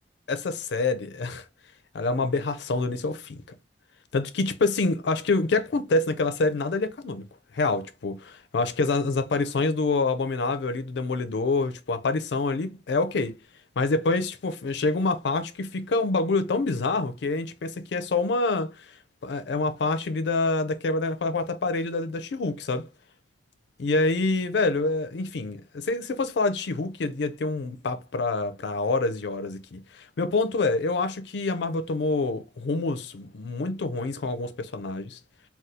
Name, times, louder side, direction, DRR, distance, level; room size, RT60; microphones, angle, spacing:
voice 1, 0.3-1.4 1.9-3.4 4.1-7.3 7.5-13.4 13.8-18.9 19.2-22.9 23.8-35.2, left 3 dB, 70° left, 0.4 m, -26 dB
2.7 x 2.3 x 3.5 m
head